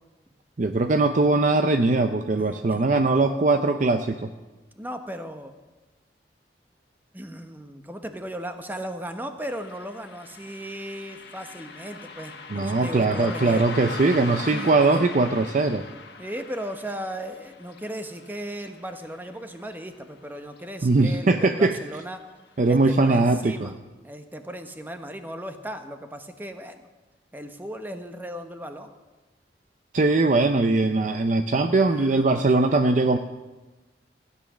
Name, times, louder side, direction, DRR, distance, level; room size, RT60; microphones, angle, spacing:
voice 1, 0.6-4.3 12.5-15.9 20.8-21.8 22.6-23.7 29.9-33.2, right 3 dB, 45° right, 8 dB, 0.5 m, -21 dB
voice 2, 2.4-2.9 4.8-5.5 7.1-13.7 14.4-15.0 16.2-22.2 22.7-23.7 24.0-26.9 27.3-28.9 31.9-32.6, equal, 10° right, 7 dB, 0.9 m, -36 dB
Car passing by, 9.4-20.3 20.5-20.6 21.6-21.8 22.2-22.3 22.8-22.9, left 4 dB, 70° left, 1.5 m, -40 dB
16.0 x 10.0 x 6.2 m, 1.2 s
head